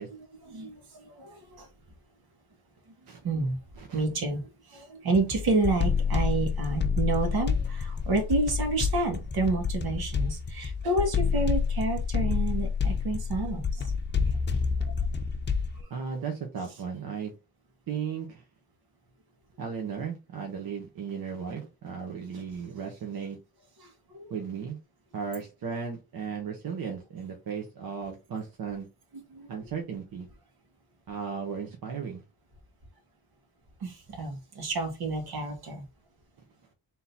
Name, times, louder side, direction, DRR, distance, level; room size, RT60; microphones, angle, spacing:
voice 1, 0.1-1.7 3.2-3.6 3.9-13.9 14.8-14.9 15.8-16.1 22.3-22.4 23.8-24.3 29.1-29.5 33.8-35.8, right 3 dB, 90° right, 1.6 m, -30 dB
sound 1, 5.1-15.8, left 5 dB, 30° left, 0.6 m, -28 dB
voice 2, 15.9-17.3 17.9-18.4 19.6-23.4 24.3-24.8 25.1-28.9 29.5-30.3 31.1-32.2, right 6 dB, 75° right, 1.1 m, -35 dB
3.8 x 2.9 x 3.9 m
cardioid pair, 110°, 36 cm